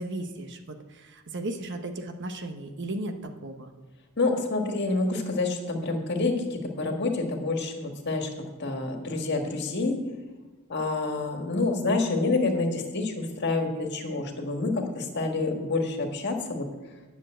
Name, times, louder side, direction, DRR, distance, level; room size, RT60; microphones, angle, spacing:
voice 1, 0.0-3.7, right 1 dB, 55° right, 6 dB, 1.1 m, -35 dB
voice 2, 4.2-8.3 8.6-10.0 10.7-16.7, left 3 dB, 55° left, 4 dB, 1.6 m, -28 dB
10.5 x 7.1 x 7.6 m, 1.2 s
head